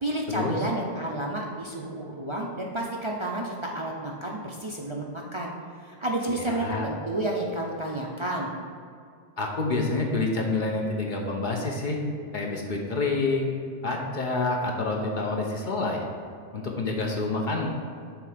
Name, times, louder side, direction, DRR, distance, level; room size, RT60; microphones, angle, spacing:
voice 1, 0.0-8.5, right 1 dB, 45° right, -2 dB, 0.4 m, -31 dB
voice 2, 6.3-6.9 9.4-12.0 12.3-13.5 13.8-16.1 16.5-17.7, left 3 dB, 50° left, 0 dB, 0.8 m, -28 dB
7.4 x 3.4 x 5.0 m, 2.3 s
omnidirectional pair, 1.2 m